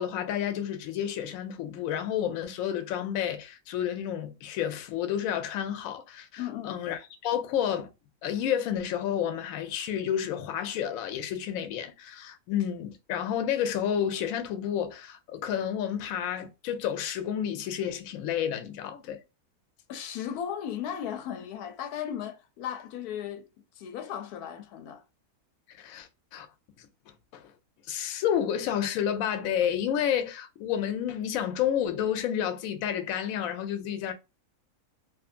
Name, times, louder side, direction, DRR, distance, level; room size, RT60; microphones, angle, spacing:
voice 1, 0.0-7.9 8.2-19.2 25.7-26.5 26.8-26.9 27.3-27.5 27.9-34.1, left 9 dB, 70° left, 0.9 m, -30 dB
voice 2, 6.4-6.8 19.9-23.5 23.8-25.0, left 9 dB, 85° left, 1.1 m, -36 dB
2.6 x 2.4 x 2.4 m
omnidirectional pair, 1.6 m